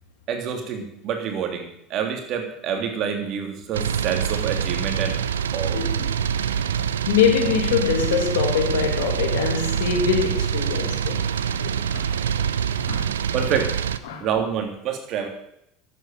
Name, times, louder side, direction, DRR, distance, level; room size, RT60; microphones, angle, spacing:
voice 1, 0.3-5.2 5.5-5.8 13.3-13.8 14.2-15.3, right 7 dB, 55° right, 3.1 m, -27 dB
sound 1, 3.7-14.0, right 8 dB, 90° right, 0.6 m, -25 dB
voice 2, 7.1-12.5 12.9-13.1 13.5-13.6 14.0-14.6, left 7 dB, 80° left, 2.5 m, -24 dB
11.5 x 8.8 x 7.5 m
hypercardioid pair, 80°, 0 cm